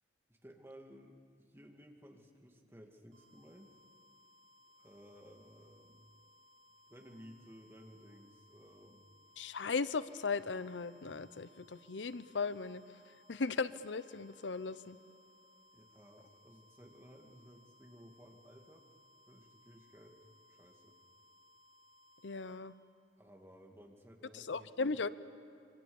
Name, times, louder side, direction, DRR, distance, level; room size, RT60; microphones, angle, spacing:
voice 1, 0.3-3.8 4.8-6.1 6.9-9.0 15.7-18.8 19.3-20.2 20.5-21.0 23.2-24.7, equal, 15° right, 1 dB, 2.3 m, -57 dB
sound 1, 3.1-22.6, left 2 dB, 75° right, 6.2 m, -65 dB
voice 2, 9.4-12.8 13.3-15.0 22.2-22.7 24.3-25.1, left 4 dB, 90° left, 15 dB, 0.7 m, -37 dB
27.0 x 24.5 x 7.1 m, 2.7 s
head